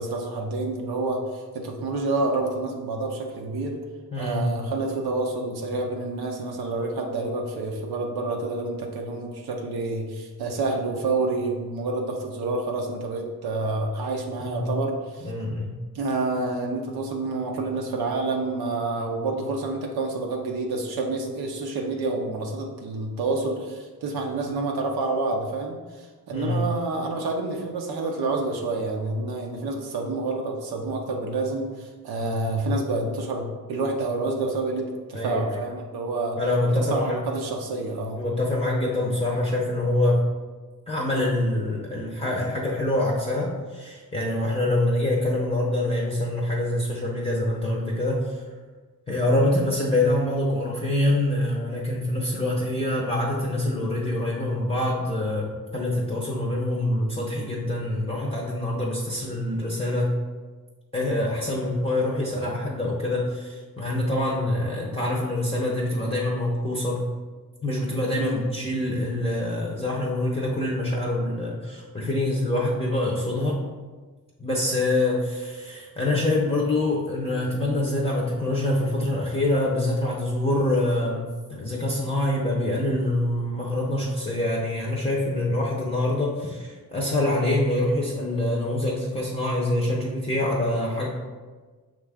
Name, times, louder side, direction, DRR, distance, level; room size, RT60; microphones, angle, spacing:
voice 1, 0.0-3.8 4.2-15.3 15.9-36.4 36.7-38.2 68.2-68.5, right 2 dB, 90° right, 1 dB, 0.6 m, -28 dB
voice 2, 15.2-15.8 26.3-26.6 35.1-35.4 36.4-37.2 38.2-40.2 40.9-48.4 49.1-60.2 60.9-67.0 67.6-73.6 74.4-91.1, left 1 dB, 15° left, -4 dB, 0.6 m, -25 dB
5.9 x 2.4 x 3.4 m, 1.4 s
wide cardioid pair, 95°, 36 cm